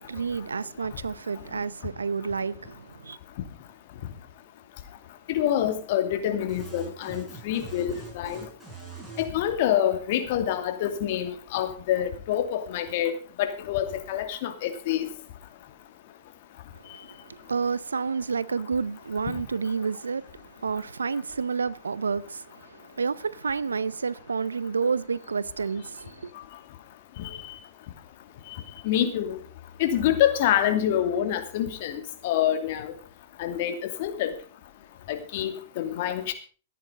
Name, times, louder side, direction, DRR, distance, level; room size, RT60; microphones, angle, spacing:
voice 1, 0.0-3.2 16.9-26.3, right 5 dB, 90° right, 0.7 m, -30 dB
voice 2, 5.3-8.5 9.2-13.1 13.4-15.1 27.2-27.4 28.8-29.4 29.8-32.9 33.4-34.3 35.1-36.3, left 11 dB, 55° left, 2.6 m, -26 dB
sound 1, 6.5-9.3, right 6 dB, 15° right, 6.7 m, -43 dB
14.5 x 10.0 x 5.1 m
hypercardioid pair, 110°, 0 cm